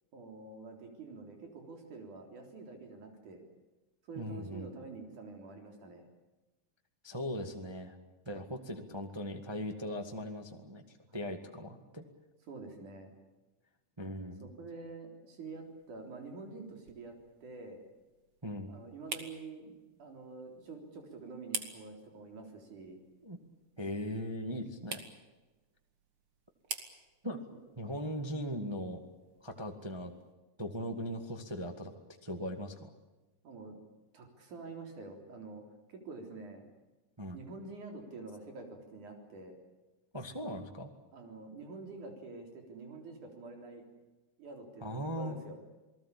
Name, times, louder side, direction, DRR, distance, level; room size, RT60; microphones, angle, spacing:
voice 1, 0.1-3.4 4.1-6.0 12.5-13.2 14.4-17.8 18.7-23.0 27.5-27.6 33.4-33.8 34.1-35.6 35.9-36.7 37.3-39.6 41.1-43.8 44.4-45.6, right 3 dB, 80° right, 4 dB, 5.2 m, -47 dB
voice 2, 4.1-4.7 7.0-8.0 8.2-12.0 14.0-14.5 18.4-18.7 23.2-23.4 23.8-25.0 27.2-27.4 27.7-29.0 29.4-30.1 30.6-31.9 32.2-32.9 37.2-37.4 40.1-40.9 44.8-45.4, equal, 10° right, 4 dB, 1.4 m, -39 dB
sound 1, 15.5-30.3, right 5 dB, 45° right, 2.8 m, -49 dB
28.5 x 19.5 x 8.5 m, 1.1 s
omnidirectional pair, 3.5 m